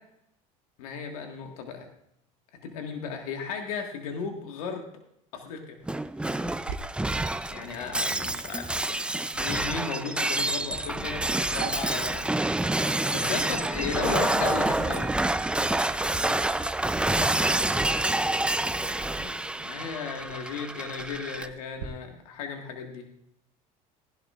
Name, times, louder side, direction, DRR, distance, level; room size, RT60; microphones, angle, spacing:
voice 1, 0.8-1.9 2.6-4.8 5.3-5.8 7.5-12.3 13.1-15.1 19.1-23.0, left 6 dB, 85° left, 3 dB, 1.8 m, -35 dB
Shatter, 5.9-21.5, right 2 dB, 5° right, 0.5 m, -28 dB
Sink (filling or washing), 6.4-21.9, right 7 dB, 85° right, 1.0 m, -47 dB
16.0 x 11.5 x 2.5 m, 0.75 s
supercardioid pair, 90°, 18 cm